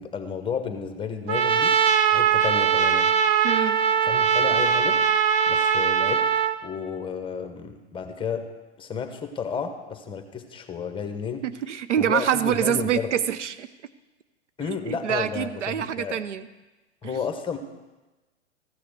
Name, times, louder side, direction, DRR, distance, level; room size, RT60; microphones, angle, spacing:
voice 1, 0.0-1.8 2.1-3.1 4.0-5.0 5.5-6.3 6.6-8.5 8.8-11.4 12.0-13.1 14.6-16.2 17.0-17.6, left 6 dB, 15° left, 7 dB, 1.2 m, -32 dB
Trumpet, 1.3-6.6, right 7 dB, 35° right, 0.7 m, -21 dB
voice 2, 3.4-3.8 11.4-13.7 14.9-16.5 17.0-17.2, right 9 dB, 80° right, 13 dB, 0.8 m, -26 dB
14.5 x 6.7 x 6.6 m, 1.1 s
hypercardioid pair, 115°, 36 cm